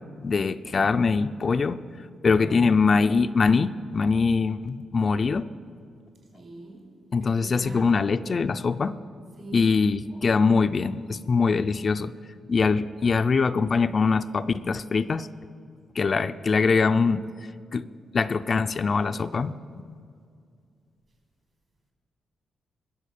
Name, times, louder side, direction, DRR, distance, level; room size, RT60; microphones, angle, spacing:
voice 1, 0.2-1.8 2.2-5.5 7.1-8.9 9.5-12.1 12.5-15.3 16.0-17.2 17.7-17.9 18.1-19.6, left 4 dB, 45° left, 11 dB, 0.4 m, -23 dB
voice 2, 6.3-6.9 7.2-7.9 9.3-9.7, right 2 dB, 60° right, 1 dB, 4.6 m, -42 dB
20.5 x 7.1 x 6.7 m, 2.3 s
cardioid pair, 90°, 0 cm